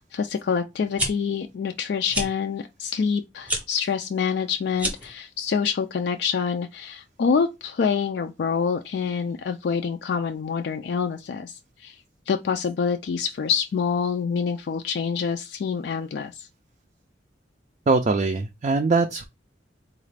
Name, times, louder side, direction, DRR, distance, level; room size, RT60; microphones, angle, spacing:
voice 1, 0.0-12.0 12.3-16.5, left 6 dB, 60° left, 0.3 m, -26 dB
sound 1, 0.8-1.1 2.1-2.3 3.4-3.6 4.7-5.1, right 1 dB, 10° right, 0.7 m, -27 dB
voice 2, 17.9-19.3, right 3 dB, 40° right, 0.4 m, -22 dB
4.0 x 2.4 x 3.2 m
head